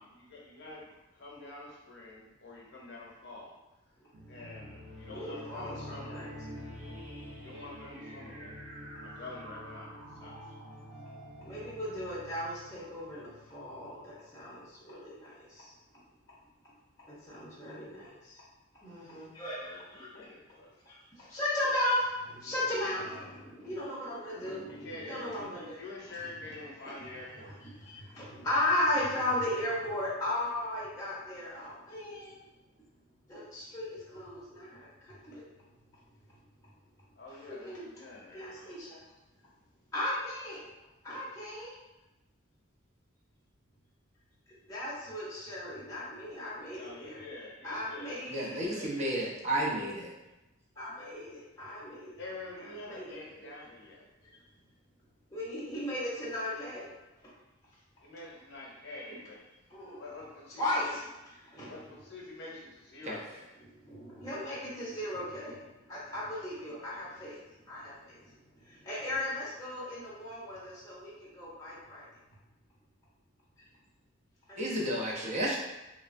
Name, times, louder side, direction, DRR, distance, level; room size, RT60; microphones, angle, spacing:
voice 1, 0.0-3.5 3.9-4.0 4.3-6.3 7.4-8.6 9.0-10.6 19.6-20.7 22.8-23.3 24.7-25.4 25.8-27.6 37.2-38.7 46.7-48.2 48.5-49.3 52.2-54.1 58.0-59.4 59.9-60.9 61.7-63.5, left 2 dB, 55° left, -3 dB, 0.7 m, -47 dB
voice 2, 4.0-4.3 5.1-6.3 11.4-15.7 17.0-18.4 18.8-20.1 20.9-25.8 27.0-27.2 27.7-32.4 33.3-35.4 37.5-37.9 38.3-39.0 39.9-40.7 41.0-41.7 44.7-47.2 47.6-48.7 50.8-52.1 52.9-53.5 55.3-56.9 59.7-60.0 60.6-61.0 61.4-61.7 63.7-72.1 74.5-74.8, left 1 dB, 15° left, -8 dB, 0.6 m, -36 dB
sound 1, 4.1-14.3, equal, 90° right, 0.6 m, -47 dB
voice 3, 48.3-50.1 63.0-63.2 74.6-75.6, right 1 dB, 35° right, -4 dB, 0.5 m, -32 dB
3.1 x 2.0 x 2.5 m, 0.99 s
head